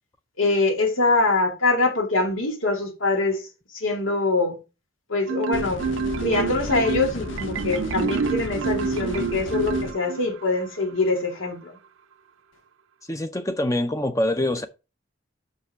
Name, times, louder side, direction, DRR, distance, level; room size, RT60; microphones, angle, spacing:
voice 1, 0.4-3.4 3.7-4.6 5.1-5.9 6.2-11.8, left 3 dB, 85° left, 2.6 m, -23 dB
Marimba xylophone, 5.3-10.4, right 4 dB, 80° right, 0.5 m, -28 dB
sound 1, 5.5-9.9, left 2 dB, 70° left, 1.1 m, -34 dB
voice 2, 13.1-14.7, left 1 dB, 15° left, 0.5 m, -24 dB
5.8 x 5.5 x 5.6 m
head